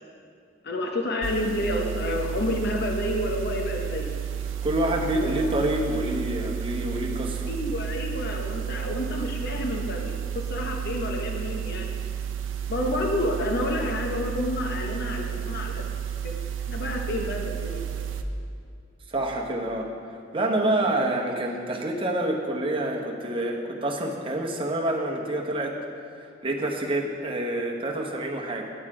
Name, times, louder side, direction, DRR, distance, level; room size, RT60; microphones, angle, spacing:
voice 1, 0.6-4.1 5.2-5.5 7.4-11.9 12.7-15.9 16.2-16.3 16.7-18.2, left 1 dB, 55° left, 2 dB, 0.8 m, -29 dB
sound 1, 1.2-18.2, right 8 dB, 70° right, 0.6 m, -32 dB
voice 2, 4.6-7.5 19.1-25.8 26.4-28.6, right 1 dB, 30° right, 0 dB, 1.0 m, -27 dB
8.7 x 8.1 x 4.8 m, 2.3 s
head